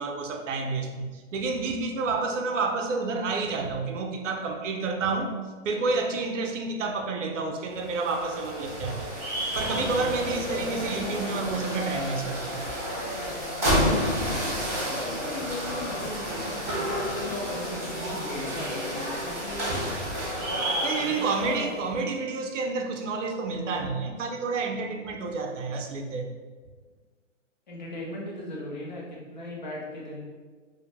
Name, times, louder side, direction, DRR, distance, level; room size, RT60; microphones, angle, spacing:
voice 1, 0.0-5.3 5.6-9.1 9.5-12.6 20.8-26.3, right 3 dB, 75° right, 3 dB, 0.5 m, -29 dB
sound 1, 7.7-21.8, equal, 10° right, 0.5 m, -30 dB
voice 2, 14.8-18.7 19.2-19.8 20.9-21.8 27.7-30.2, left 1 dB, 40° left, -4 dB, 0.5 m, -38 dB
2.6 x 2.1 x 2.9 m, 1.4 s
hypercardioid pair, 180°, 37 cm